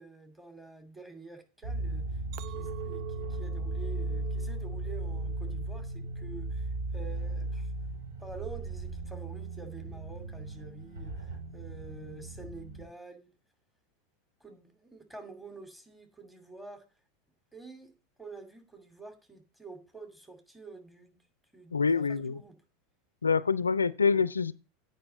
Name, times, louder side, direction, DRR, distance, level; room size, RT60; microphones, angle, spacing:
voice 1, 0.0-2.2 2.5-7.9 8.2-13.3 14.4-16.8 17.5-17.9 18.2-21.2 21.5-22.6, right 3 dB, 5° right, 2.7 m, -48 dB
sound 1, 1.6-12.8, right 2 dB, 75° right, 2.9 m, -36 dB
Chink clink, 2.3-6.7 7.1-7.6, right 15 dB, 55° right, 0.6 m, -47 dB
voice 2, 21.7-22.4 23.2-24.5, left 5 dB, 85° left, 0.4 m, -26 dB
9.0 x 5.3 x 7.8 m
figure-of-eight pair, 85°, 0 cm